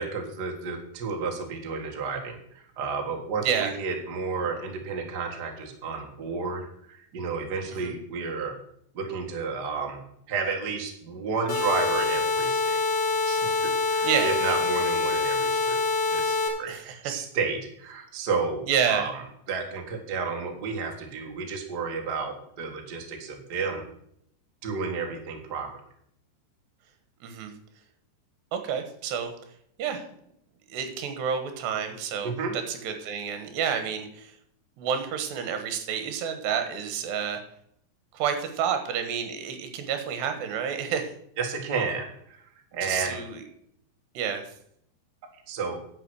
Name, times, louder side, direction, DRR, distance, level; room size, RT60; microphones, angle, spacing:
voice 1, 0.0-8.5 8.9-10.0 10.3-12.8 13.2-15.8 16.1-19.2 19.5-23.9 24.6-25.7 32.2-32.5 41.4-42.1 42.7-43.2 45.5-45.8, right 4 dB, 60° right, 2 dB, 1.0 m, -31 dB
voice 2, 3.4-3.7 7.7-7.9 14.0-14.3 16.7-17.1 18.7-19.1 27.2-27.5 28.5-29.3 29.8-30.0 30.7-34.3 34.8-37.4 38.1-41.1 42.8-43.4 44.2-44.4, right 7 dB, 75° right, 7 dB, 3.4 m, -29 dB
sound 1, 11.5-16.5, left 3 dB, 30° left, 3.2 m, -25 dB
11.0 x 7.5 x 6.3 m, 0.70 s
omnidirectional pair, 5.0 m